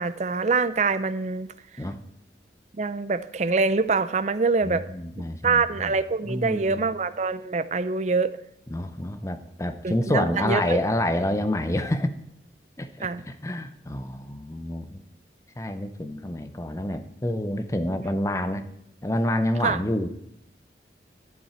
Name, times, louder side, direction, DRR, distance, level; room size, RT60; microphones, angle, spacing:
voice 1, 0.0-1.5 2.8-4.8 5.4-8.3 9.8-10.8 13.0-13.2 19.6-19.8, right 4 dB, 40° right, 15 dB, 0.5 m, -25 dB
voice 2, 4.6-5.9 6.2-6.8 8.7-12.1 12.8-15.0 15.6-18.7 19.0-20.1, left 1 dB, 15° left, 9 dB, 0.6 m, -28 dB
12.0 x 7.3 x 4.4 m, 0.77 s
head